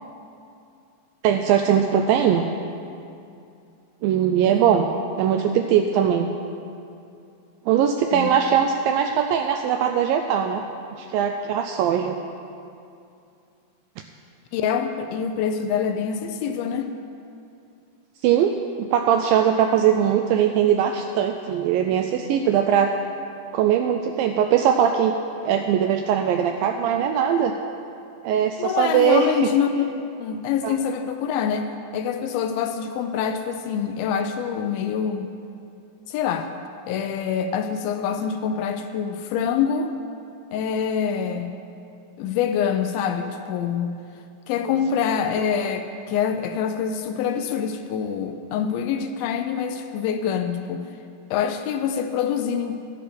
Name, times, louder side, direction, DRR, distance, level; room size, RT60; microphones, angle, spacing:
voice 1, 1.2-2.5 4.0-4.9 5.2-6.3 7.7-10.6 11.0-12.2 18.2-22.9 23.5-25.1 25.4-27.5 28.2-29.3 30.6-30.8, right 9 dB, 85° right, 5 dB, 2.0 m, -20 dB
voice 2, 14.5-16.9 28.6-35.3 36.1-36.5 36.9-39.9 40.5-41.5 42.2-44.0 44.5-50.9 51.3-52.8, left 7 dB, 80° left, 7 dB, 2.3 m, -25 dB
12.0 x 11.0 x 5.1 m, 2.5 s
omnidirectional pair, 4.5 m